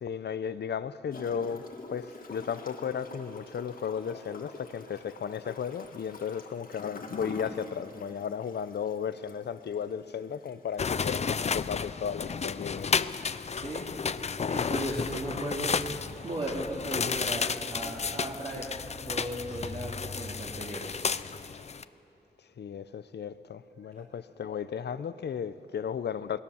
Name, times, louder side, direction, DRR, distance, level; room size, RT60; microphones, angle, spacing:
voice 1, 0.0-13.1 22.6-26.4, left 7 dB, 80° left, 0.7 m, -35 dB
Gurgling / Toilet flush, 1.1-19.6, left 3 dB, 55° left, 1.7 m, -48 dB
sound 1, 10.8-21.8, left 5 dB, 40° left, 0.5 m, -32 dB
voice 2, 13.5-21.3, right 1 dB, 35° right, 2.7 m, -36 dB
28.0 x 19.5 x 7.1 m
wide cardioid pair, 180°, 17 cm